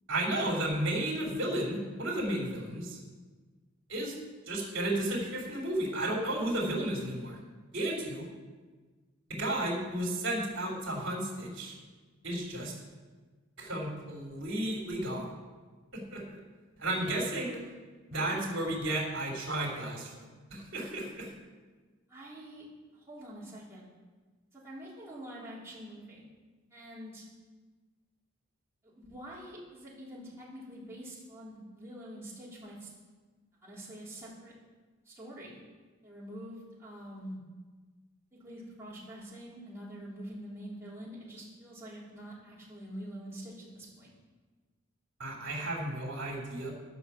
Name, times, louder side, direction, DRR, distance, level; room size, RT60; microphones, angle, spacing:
voice 1, 0.1-3.0 3.9-4.1 4.5-7.4 7.7-8.3 9.3-11.8 12.2-12.7 13.6-15.3 15.9-16.2 16.8-17.6 18.1-20.2 20.5-21.3 45.2-46.7, right 1 dB, 65° right, -1 dB, 3.3 m, -33 dB
voice 2, 18.1-18.5 22.1-22.6 22.9-23.8 24.5-26.2 26.7-27.3 28.8-32.9 33.6-34.5 35.0-35.6 36.0-37.4 38.3-44.1, equal, 10° right, -8 dB, 3.3 m, -46 dB
12.0 x 6.0 x 7.1 m, 1.4 s
head